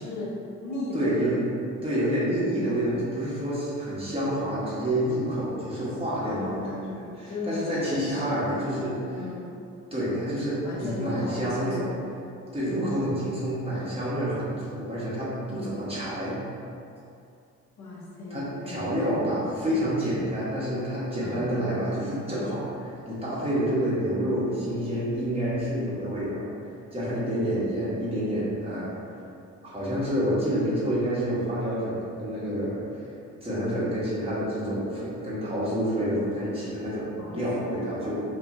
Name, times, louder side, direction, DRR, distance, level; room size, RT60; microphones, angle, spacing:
voice 1, 0.0-1.1 6.2-7.6 7.8-8.3 9.1-9.6 10.6-12.0 12.7-13.5 17.8-19.2 21.2-21.5 37.2-37.8, left 2 dB, 70° left, -6 dB, 0.9 m, -36 dB
voice 2, 0.9-1.4 1.8-9.0 9.9-11.8 12.5-16.4 18.3-26.4 26.9-28.9 29.6-32.8 33.4-38.2, equal, 20° right, -9 dB, 1.2 m, -28 dB
2.7 x 2.4 x 4.1 m, 2.5 s
cardioid pair, 90°, 30 cm